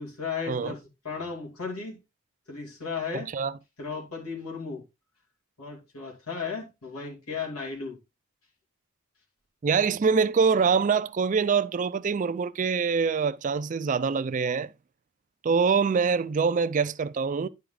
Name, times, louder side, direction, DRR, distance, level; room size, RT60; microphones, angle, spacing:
voice 1, 0.0-2.0 2.5-3.3 3.8-4.8 5.6-8.0, left 5 dB, 90° left, 2.9 m, -35 dB
voice 2, 3.1-3.5 9.6-14.7 15.4-17.5, right 5 dB, 35° right, 0.3 m, -24 dB
10.5 x 4.7 x 3.8 m
head